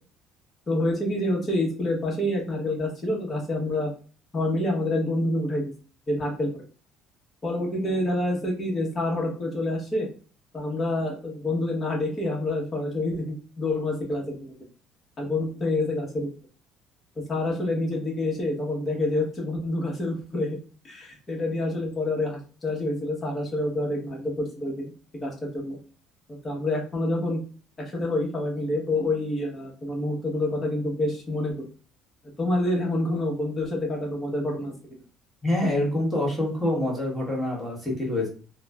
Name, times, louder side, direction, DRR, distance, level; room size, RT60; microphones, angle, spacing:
voice 1, 0.7-3.9 4.3-5.7 6.1-6.6 7.4-10.1 10.5-14.5 15.2-16.3 17.3-20.6 20.8-24.9 25.2-25.8 26.3-27.4 27.9-31.5 32.4-34.7 37.2-37.3, left 1 dB, 25° left, -1 dB, 0.9 m, -27 dB
voice 2, 35.4-38.3, left 1 dB, ahead, -3 dB, 1.1 m, -26 dB
3.0 x 2.0 x 2.2 m, 0.39 s
cardioid pair, 145°, 0 cm